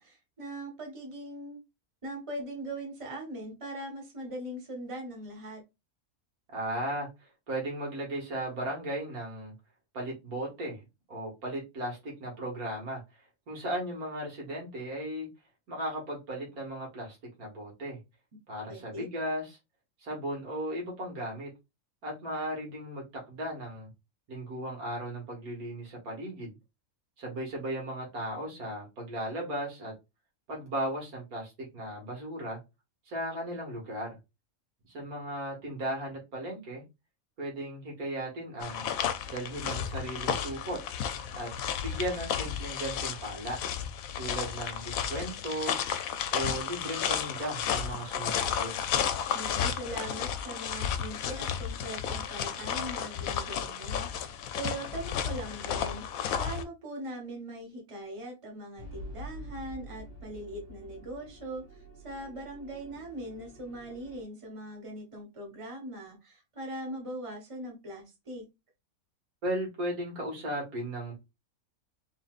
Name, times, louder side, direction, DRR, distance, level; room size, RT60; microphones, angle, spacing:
voice 1, 0.0-1.6 2.0-5.6 18.7-19.0 49.3-56.1 56.4-68.4, right 1 dB, 25° right, 1 dB, 1.3 m, -41 dB
voice 2, 6.5-9.5 9.9-10.8 11.1-13.0 13.5-15.3 15.7-18.0 18.5-19.6 20.0-21.5 22.0-23.9 24.3-26.6 27.2-29.9 30.5-32.6 33.1-34.2 34.9-36.8 37.4-38.9 39.3-40.8 41.3-41.5 41.8-43.6 44.2-45.8 46.3-48.9 69.4-71.1, right 1 dB, 80° right, -1 dB, 2.3 m, -36 dB
sound 1, 38.6-56.6, left 8 dB, 75° left, 1.0 m, -33 dB
sound 2, 58.8-64.2, equal, 25° left, 1.4 m, -47 dB
3.9 x 3.9 x 2.4 m, 0.24 s
omnidirectional pair, 1.5 m